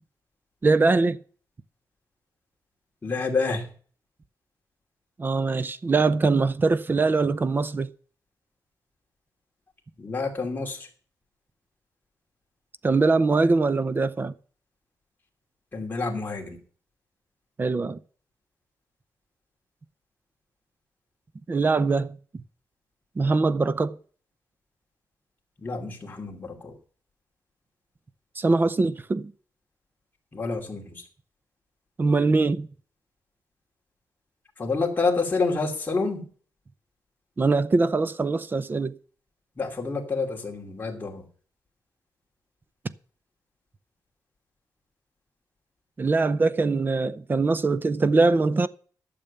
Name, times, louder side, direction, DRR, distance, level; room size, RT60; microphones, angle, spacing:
voice 1, 0.6-1.2 5.2-7.9 12.8-14.3 17.6-18.0 21.5-22.2 23.2-24.0 28.4-29.3 32.0-32.7 37.4-39.0 46.0-48.7, right 3 dB, 30° right, 0.6 m, -22 dB
voice 2, 3.0-3.7 10.0-10.8 15.7-16.6 25.6-26.7 30.3-31.0 34.6-36.3 39.6-41.2, left 4 dB, 25° left, 2.7 m, -28 dB
12.5 x 7.0 x 6.8 m
wide cardioid pair, 145°, 7 cm